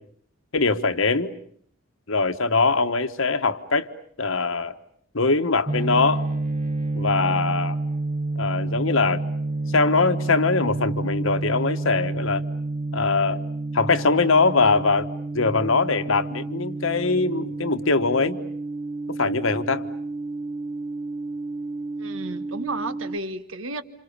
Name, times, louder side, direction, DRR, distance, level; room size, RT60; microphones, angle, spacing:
voice 1, 0.5-1.3 2.1-3.9 4.2-4.7 5.1-6.2 6.9-7.8 8.3-9.2 9.7-12.4 12.9-13.4 13.7-15.1 15.3-18.4 19.1-19.9, left 4 dB, 75° left, 1.4 m, -22 dB
sound 1, 5.7-23.2, right 2 dB, 35° right, 1.2 m, -29 dB
voice 2, 22.0-23.8, right 2 dB, 75° right, 1.5 m, -32 dB
29.0 x 28.0 x 6.9 m
head